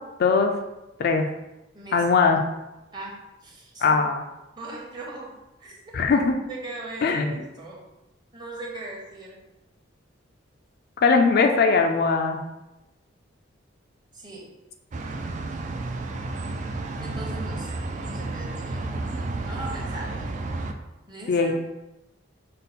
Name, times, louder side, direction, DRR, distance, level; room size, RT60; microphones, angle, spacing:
voice 1, 0.2-0.5 1.0-1.3 1.9-2.4 3.8-4.2 5.9-6.3 7.0-7.3 11.0-12.4 21.3-21.5, left 4 dB, 55° left, 4 dB, 0.3 m, -20 dB
voice 2, 1.7-2.1 2.9-4.0 4.6-5.3 5.6-5.8 6.5-7.8 8.3-9.4 14.1-14.5 17.0-17.8 18.0-19.1 19.5-20.3 21.1-21.5, right 2 dB, 20° right, -3 dB, 0.9 m, -39 dB
sound 1, 14.9-20.7, right 2 dB, 40° right, 0.3 m, -31 dB
5.4 x 2.1 x 4.0 m, 0.97 s
head